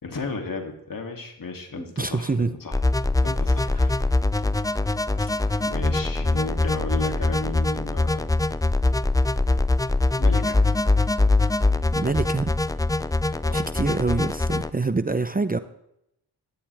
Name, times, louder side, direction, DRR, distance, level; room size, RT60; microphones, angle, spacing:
voice 1, 0.0-2.8 3.2-4.0 5.2-5.3 5.6-8.3 10.2-10.9 13.4-13.7, left 3 dB, 55° left, 3 dB, 3.1 m, -34 dB
voice 2, 1.8-2.5 12.0-12.5 13.5-15.6, right 3 dB, 20° right, 12 dB, 0.8 m, -25 dB
sound 1, 2.7-14.7, left 2 dB, 10° left, 0.5 m, -23 dB
16.5 x 13.0 x 3.6 m, 0.78 s
cardioid pair, 55°, 41 cm